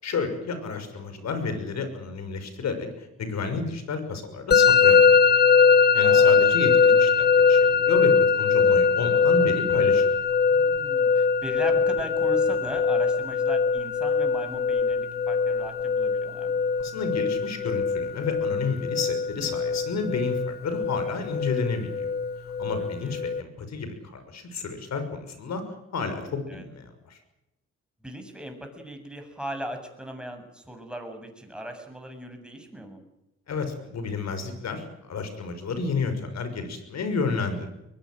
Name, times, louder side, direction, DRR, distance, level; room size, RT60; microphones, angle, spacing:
voice 1, 0.0-5.1 5.9-10.0 16.8-22.1 22.6-25.6 25.9-27.2 33.5-37.7, left 4 dB, 60° left, 9 dB, 6.2 m, -31 dB
Musical instrument, 4.5-23.4, left 5 dB, 35° left, 0.9 m, -21 dB
voice 2, 6.0-6.4 10.5-16.6 23.0-23.2 26.0-26.6 28.0-33.0, equal, 5° right, 4 dB, 7.5 m, -38 dB
22.5 x 22.0 x 7.9 m, 0.91 s
cardioid pair, 90°, 30 cm